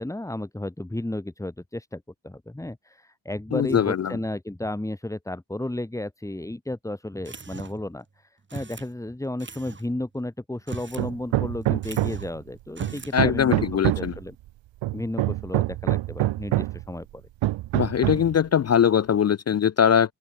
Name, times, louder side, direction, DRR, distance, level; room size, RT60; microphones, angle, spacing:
voice 1, 0.0-14.4 14.9-17.2, left 1 dB, 5° left, 2.5 m, -33 dB
voice 2, 3.5-4.1 13.1-14.1 17.7-20.1, left 8 dB, 35° left, 0.5 m, -21 dB
sound 1, 7.3-7.9 8.5-8.9 9.4-9.9 10.6-11.1 11.4-11.5 11.8-12.3 12.7-13.2, right 4 dB, 25° right, 3.1 m, -39 dB
Hammer, 11.0-12.4 12.8-14.2 14.8-16.9 17.4-18.4, right 16 dB, 85° right, 0.6 m, -26 dB
open air
wide cardioid pair, 150°, 44 cm